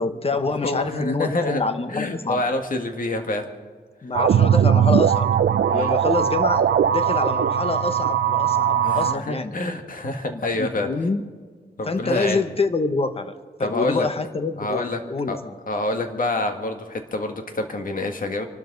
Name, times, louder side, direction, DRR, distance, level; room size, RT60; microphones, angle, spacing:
voice 1, 0.0-2.4 4.0-5.3 5.7-9.5 10.3-11.2 11.9-13.3 13.6-15.5, left 3 dB, 35° left, 9 dB, 1.1 m, -26 dB
voice 2, 0.6-1.6 1.9-3.5 5.7-5.9 8.8-10.9 11.8-12.4 13.6-14.1 14.6-15.0 15.3-15.4 15.7-18.5, left 2 dB, 55° left, 5 dB, 1.9 m, -27 dB
sound 1, 4.1-9.1, right 8 dB, 75° right, 0.5 m, -19 dB
26.5 x 12.0 x 4.0 m, 1.5 s
wide cardioid pair, 140°, 17 cm